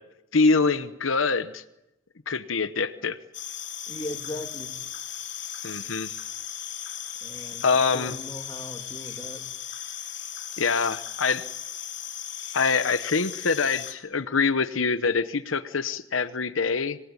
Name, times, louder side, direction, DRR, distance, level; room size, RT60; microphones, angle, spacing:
voice 1, 0.3-1.6 2.3-3.2 5.6-6.2 7.6-8.2 10.6-11.5 12.5-17.0, left 4 dB, 80° left, 11 dB, 1.0 m, -25 dB
sound 1, 3.3-13.9, left 10 dB, 60° left, 3.0 m, -37 dB
voice 2, 3.9-4.7 7.2-9.4, left 1 dB, 15° left, 3 dB, 3.1 m, -38 dB
26.0 x 19.0 x 9.8 m, 0.93 s
head